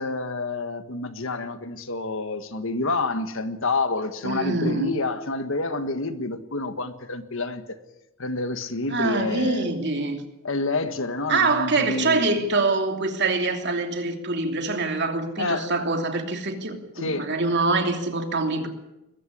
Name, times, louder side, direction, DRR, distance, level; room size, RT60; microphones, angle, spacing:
voice 1, 0.0-7.8 8.2-9.7 10.4-12.3 15.4-15.7 16.9-17.3, left 3 dB, 65° left, 9 dB, 1.7 m, -28 dB
voice 2, 4.2-4.9 8.9-10.2 11.3-18.7, right 3 dB, 50° right, 5 dB, 2.9 m, -25 dB
21.5 x 15.0 x 9.9 m, 0.92 s
head